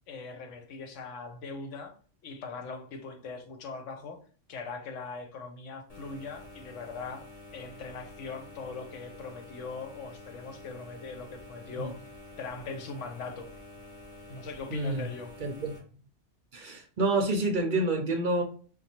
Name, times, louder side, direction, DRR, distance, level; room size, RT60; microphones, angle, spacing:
voice 1, 0.1-1.9 2.2-4.2 4.5-7.3 7.5-12.0 12.4-13.5 14.3-15.3, left 4 dB, 85° left, 1.1 m, -40 dB
sound 1, 5.9-15.8, left 2 dB, 35° left, 1.0 m, -49 dB
voice 2, 14.7-15.1 15.4-15.7 16.5-18.4, right 2 dB, 55° right, 0.6 m, -28 dB
5.1 x 2.3 x 2.9 m
omnidirectional pair, 1.2 m